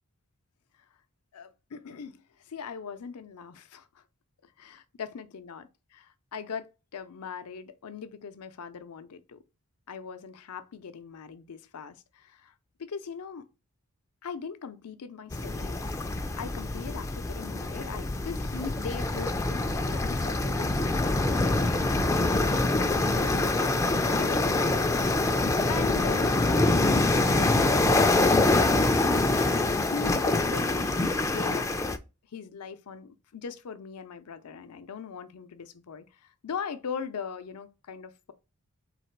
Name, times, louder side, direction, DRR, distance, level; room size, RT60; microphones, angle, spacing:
voice 1, 1.3-4.0 4.4-9.4 9.9-12.5 12.8-13.5 14.2-15.9 16.3-23.5 24.1-24.9 25.7-31.7 32.3-38.3, left 6 dB, 80° left, 0.5 m, -40 dB
sound 1, 15.3-32.0, left 2 dB, 15° left, 0.3 m, -25 dB
4.0 x 2.8 x 4.5 m
head